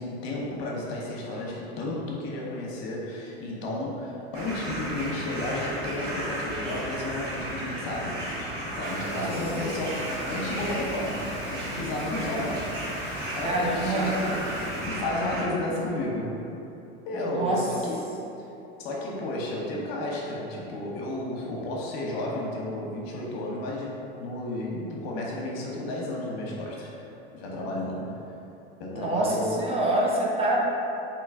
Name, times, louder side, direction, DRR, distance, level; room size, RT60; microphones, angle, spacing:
voice 1, 0.0-8.2 8.8-12.7 13.4-14.4 14.8-16.4 17.1-18.1 18.8-27.0 27.3-28.1 28.8-29.6, left 1 dB, 65° left, -3 dB, 0.9 m, -32 dB
sound 1, 4.3-15.4, right 1 dB, 55° right, 1.2 m, -34 dB
Bird vocalization bird call bird song, 8.8-14.9, left 1 dB, 35° left, 1.0 m, -43 dB
voice 2, 13.3-14.1 17.3-17.6 28.9-30.6, right 1 dB, 20° right, -3 dB, 0.4 m, -26 dB
3.1 x 2.8 x 3.6 m, 2.8 s
hypercardioid pair, 105°, 31 cm